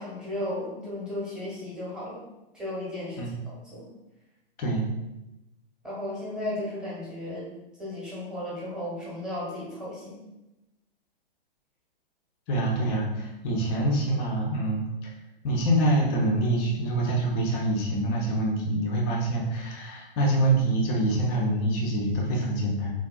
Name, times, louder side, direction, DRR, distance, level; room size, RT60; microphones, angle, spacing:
voice 1, 0.0-2.2 2.5-3.9 5.8-7.5 7.8-10.2, left 1 dB, 5° right, -7 dB, 0.8 m, -35 dB
voice 2, 4.6-4.9 12.5-15.1 15.4-22.9, right 1 dB, 20° left, -1 dB, 0.4 m, -25 dB
3.5 x 2.2 x 2.2 m, 0.95 s
figure-of-eight pair, 115°, 29 cm